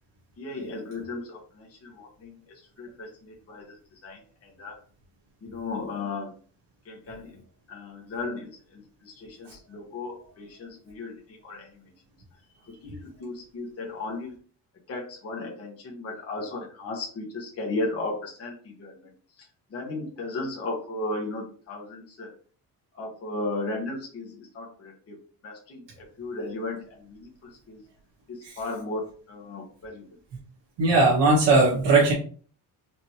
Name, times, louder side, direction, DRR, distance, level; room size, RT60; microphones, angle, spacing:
voice 1, 0.4-4.8 5.4-6.3 6.8-7.4 7.7-11.8 12.6-14.3 14.9-22.3 22.9-27.8 28.3-30.1, left 2 dB, 35° left, -2 dB, 1.3 m, -36 dB
voice 2, 30.8-32.1, right 3 dB, 85° right, -5 dB, 1.9 m, -19 dB
5.3 x 2.9 x 3.1 m, 0.42 s
cardioid pair, 165°, 41 cm